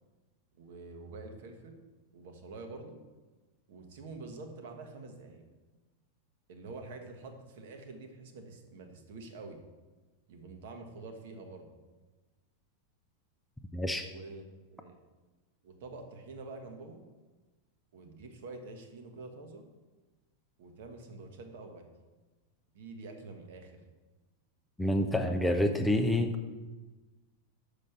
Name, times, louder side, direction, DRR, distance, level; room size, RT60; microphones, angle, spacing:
voice 1, 0.5-1.8 2.1-3.0 3.7-5.4 6.5-9.6 10.3-11.7 14.0-15.0 15.6-17.0 17.9-19.6 20.6-21.8 22.7-23.8, right 3 dB, 55° right, 5 dB, 1.1 m, -47 dB
voice 2, 13.7-14.1 24.8-26.4, left 1 dB, 5° left, 5 dB, 0.5 m, -28 dB
6.4 x 5.0 x 5.8 m, 1.2 s
figure-of-eight pair, 90°, 0 cm